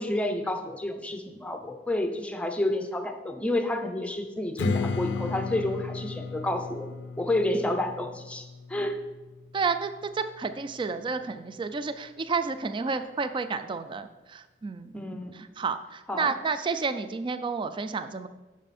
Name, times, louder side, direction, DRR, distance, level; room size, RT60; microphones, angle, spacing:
voice 1, 0.0-6.9 7.2-8.4 8.7-9.0 14.9-15.5 16.1-16.4, left 1 dB, 5° left, 6 dB, 0.7 m, -30 dB
Strum, 4.6-9.8, left 4 dB, 70° left, 0.4 m, -34 dB
voice 2, 9.5-15.0 15.3-18.3, right 4 dB, 30° right, 11 dB, 0.3 m, -31 dB
9.0 x 6.2 x 4.2 m, 1.1 s
head